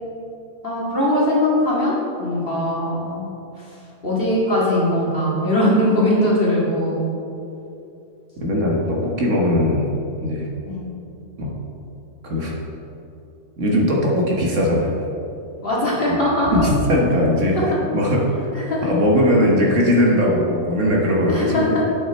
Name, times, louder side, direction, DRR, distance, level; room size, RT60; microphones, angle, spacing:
voice 1, 0.6-3.3 3.6-3.7 4.0-7.1 10.7-10.8 15.6-16.6 17.5-17.6 18.5-18.8 21.3-21.8, left 1 dB, 40° left, -6 dB, 2.1 m, -20 dB
voice 2, 8.4-9.9 10.2-10.5 11.4-11.5 12.2-12.5 13.6-15.0 16.5-18.5 18.8-21.8, equal, 60° right, -2 dB, 1.5 m, -19 dB
8.5 x 6.4 x 4.3 m, 2.8 s
omnidirectional pair, 1.5 m